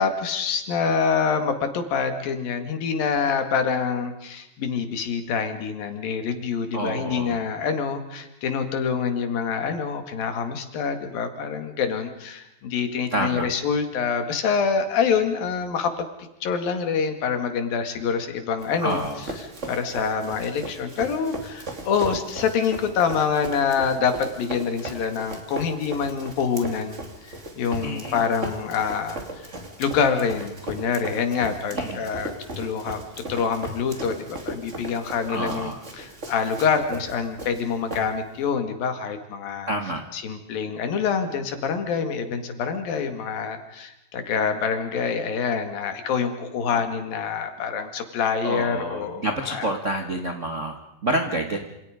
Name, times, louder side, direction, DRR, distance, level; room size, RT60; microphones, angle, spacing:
voice 1, 0.0-16.1 16.4-19.0 19.6-29.5 29.8-32.3 32.6-33.0 33.3-39.7 40.1-49.2 49.5-49.7, left 6 dB, 70° left, 7 dB, 3.8 m, -26 dB
voice 2, 6.7-7.3 13.1-13.5 18.8-19.2 27.8-28.2 31.7-32.0 35.3-35.8 39.6-40.0 46.7-46.8 48.4-51.7, right 1 dB, 55° right, 2 dB, 0.7 m, -28 dB
Run, 18.6-38.5, right 1 dB, 20° right, 2.5 m, -37 dB
27.5 x 27.5 x 5.1 m, 0.89 s
omnidirectional pair, 4.3 m